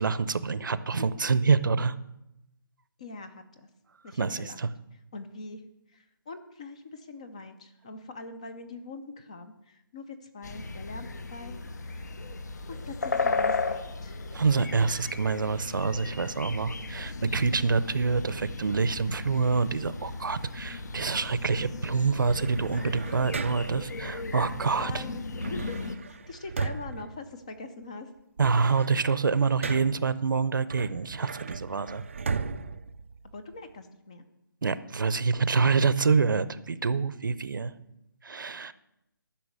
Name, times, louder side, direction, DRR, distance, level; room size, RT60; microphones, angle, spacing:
voice 1, 0.0-2.0 4.2-4.7 14.3-25.0 28.4-32.0 34.6-37.7 38.2-38.7, right 5 dB, 60° right, 15 dB, 0.7 m, -26 dB
voice 2, 3.0-3.7 4.0-4.6 5.1-5.6 5.9-12.2 12.7-14.3 24.8-25.2 25.5-25.8 26.1-28.1 33.3-34.2, left 3 dB, 15° left, 9 dB, 0.5 m, -43 dB
sound 1, 10.4-26.0, left 3 dB, 50° left, 1.0 m, -35 dB
sound 2, 22.3-23.9 25.4-27.8 28.2-30.1 30.7-33.7, right 5 dB, 35° right, 0.4 m, -36 dB
12.0 x 5.9 x 8.7 m, 0.86 s
hypercardioid pair, 175°, 12 cm